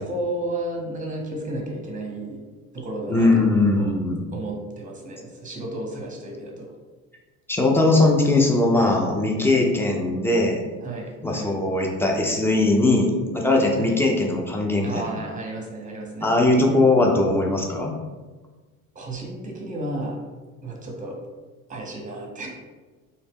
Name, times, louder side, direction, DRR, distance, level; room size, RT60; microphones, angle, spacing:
voice 1, 0.0-2.4 2.7-3.9 4.3-6.7 10.8-11.5 13.8-14.0 14.8-16.4 18.9-20.2 20.6-21.2 21.7-22.5, right 2 dB, 20° right, 0 dB, 0.8 m, -33 dB
voice 2, 3.1-4.2 7.5-10.6 11.2-14.9 16.2-18.0, left 2 dB, 5° left, 0 dB, 0.4 m, -20 dB
2.8 x 2.0 x 3.4 m, 1.3 s
hypercardioid pair, 75°, 43 cm